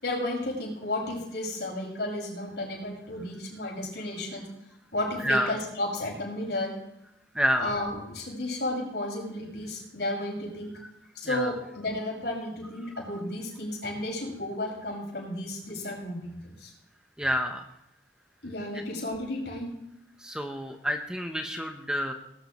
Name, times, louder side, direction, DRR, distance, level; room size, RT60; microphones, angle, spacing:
voice 1, 0.0-4.4 4.9-6.7 7.6-10.7 11.1-16.7 18.4-19.8, left 1 dB, 65° left, -2 dB, 6.0 m, -33 dB
voice 2, 7.3-7.7 11.3-11.5 17.2-17.7 20.2-22.1, equal, 5° right, 4 dB, 0.9 m, -28 dB
19.5 x 12.5 x 3.1 m, 0.82 s
head